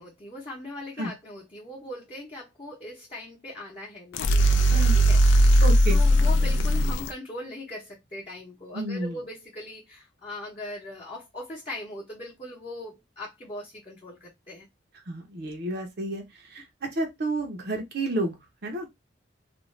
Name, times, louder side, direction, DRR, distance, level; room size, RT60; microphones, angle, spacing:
voice 1, 0.0-14.7, left 1 dB, 30° left, 0.8 m, -40 dB
sound 1, 4.1-7.1, equal, 65° left, 0.4 m, -19 dB
voice 2, 5.6-6.0 8.7-9.2 15.1-18.4 18.6-18.9, right 2 dB, 55° right, 0.7 m, -31 dB
2.5 x 2.2 x 3.1 m
head